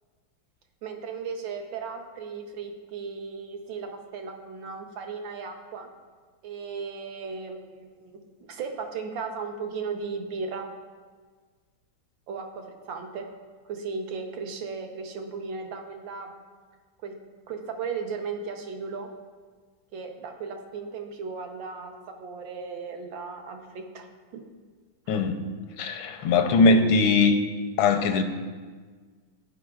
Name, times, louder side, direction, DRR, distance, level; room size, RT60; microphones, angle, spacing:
voice 1, 0.8-5.9 6.4-10.7 12.3-13.3 13.7-16.4 17.0-17.2 17.5-19.1 19.9-24.1 24.3-24.4 25.1-25.2, right 5 dB, 75° right, 4 dB, 1.5 m, -36 dB
voice 2, 25.1-25.4 25.8-27.4 27.8-28.2, left 3 dB, 85° left, 7 dB, 1.4 m, -20 dB
14.5 x 5.0 x 2.4 m, 1.5 s
omnidirectional pair, 2.2 m